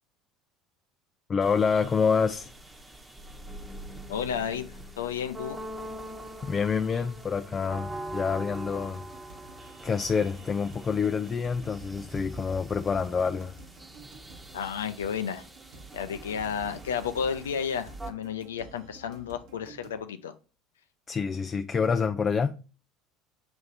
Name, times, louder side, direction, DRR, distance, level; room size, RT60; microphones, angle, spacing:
voice 1, 1.3-2.5 6.4-9.0 9.8-13.5 21.1-22.6, left 5 dB, 30° left, 0.4 m, -27 dB
sound 1, 1.4-18.1, right 1 dB, 15° right, 1.2 m, -43 dB
voice 2, 4.1-4.7 5.0-5.6 14.5-15.4 15.9-20.3, left 7 dB, 80° left, 0.5 m, -32 dB
sound 2, 8.6-20.0, right 2 dB, 60° right, 1.3 m, -52 dB
7.0 x 3.2 x 4.1 m
hypercardioid pair, 70°, 0 cm